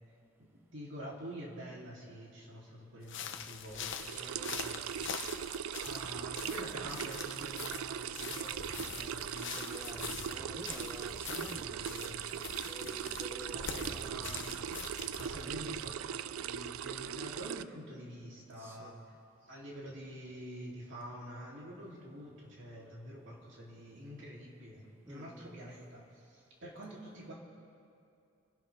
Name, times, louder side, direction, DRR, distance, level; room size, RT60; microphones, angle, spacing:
voice 1, 0.4-5.1 5.8-10.6 11.6-12.2 13.5-14.5 15.2-19.0 19.4-27.3, equal, 65° right, -4 dB, 3.6 m, -47 dB
sound 1, 3.0-15.9, left 7 dB, 60° left, 0.9 m, -44 dB
sound 2, 3.8-17.6, right 9 dB, 85° right, 0.4 m, -40 dB
voice 2, 8.6-9.0 9.5-12.2 12.6-14.3 15.3-15.9 18.6-19.1 25.1-25.7, right 1 dB, 10° right, 3 dB, 0.6 m, -49 dB
30.0 x 12.0 x 3.7 m, 2.6 s
head